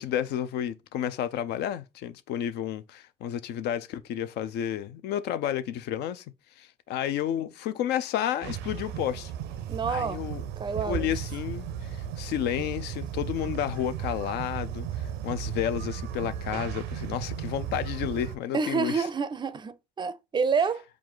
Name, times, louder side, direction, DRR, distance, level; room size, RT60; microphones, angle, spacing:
voice 1, 0.0-6.2 6.6-9.3 9.9-10.4 10.8-11.7 12.2-19.1, left 10 dB, 80° left, 0.5 m, -31 dB
sound 1, 8.4-18.4, right 9 dB, 90° right, 0.5 m, -35 dB
voice 2, 9.7-10.2 10.6-11.1 18.5-20.8, right 5 dB, 25° right, 0.4 m, -28 dB
4.8 x 2.4 x 3.7 m
cardioid pair, 110°, 17 cm